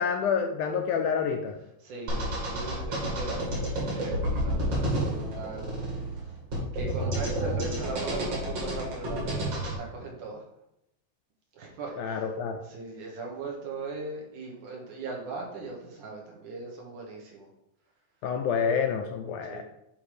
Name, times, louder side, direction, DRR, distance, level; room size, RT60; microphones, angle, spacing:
voice 1, 0.0-1.6 12.0-12.6 18.2-19.6, left 6 dB, 80° left, 5 dB, 1.9 m, -28 dB
voice 2, 1.8-5.8 6.2-6.3 6.7-10.4 11.5-12.2 12.6-17.5 19.5-19.6, right 3 dB, 65° right, -1 dB, 2.8 m, -39 dB
sound 1, 2.1-9.8, right 1 dB, 45° right, 3.1 m, -30 dB
9.8 x 3.6 x 4.9 m, 0.83 s
omnidirectional pair, 3.9 m